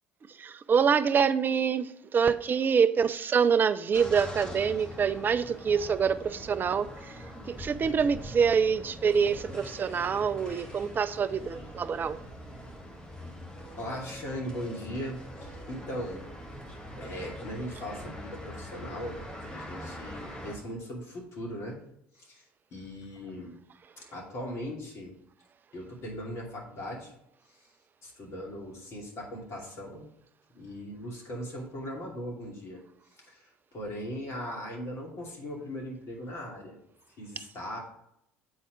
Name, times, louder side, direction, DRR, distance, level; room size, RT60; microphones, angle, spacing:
voice 1, 0.3-12.2, right 6 dB, 35° right, 0.5 m, -26 dB
sound 1, 3.9-20.6, equal, 15° left, 1.7 m, -43 dB
voice 2, 13.7-16.3 17.0-21.8 22.1-22.4 22.7-23.6 24.1-25.1 25.7-27.1 27.5-27.7 28.0-30.0 30.5-32.8 33.1-36.8 37.2-37.8, equal, 50° left, 2.7 m, -39 dB
7.9 x 4.2 x 4.7 m
hypercardioid pair, 60°, 6 cm